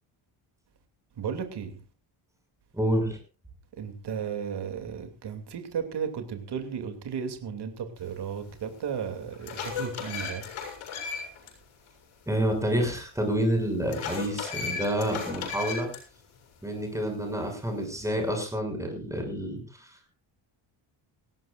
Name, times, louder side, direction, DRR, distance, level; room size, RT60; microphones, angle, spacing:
voice 1, 1.2-1.7 3.8-10.4, right 7 dB, 55° right, 6 dB, 2.8 m, -34 dB
voice 2, 2.7-3.2 12.3-15.9 16.6-20.1, equal, 5° right, 3 dB, 6.5 m, -28 dB
sound 1, 8.5-8.6 9.1-11.5 11.9-12.0 13.9-16.0, left 6 dB, 85° left, 7.3 m, -35 dB
20.0 x 16.5 x 2.5 m, 0.32 s
cardioid pair, 145°, 47 cm